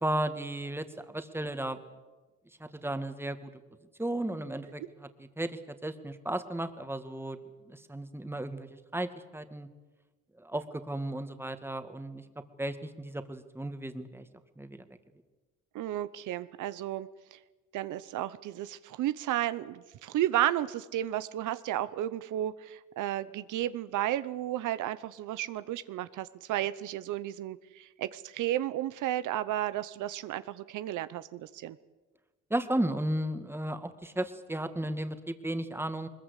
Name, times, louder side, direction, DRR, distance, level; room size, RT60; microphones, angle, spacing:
voice 1, 0.0-1.8 2.6-3.5 4.0-7.4 7.7-9.7 10.4-12.2 12.6-14.3 14.6-14.8 32.5-36.1, right 1 dB, 10° right, 9 dB, 1.9 m, -34 dB
voice 2, 15.7-17.4 17.7-31.8, right 13 dB, 80° right, 14 dB, 0.8 m, -33 dB
22.0 x 21.0 x 8.3 m, 1.2 s
cardioid pair, 90°, 30 cm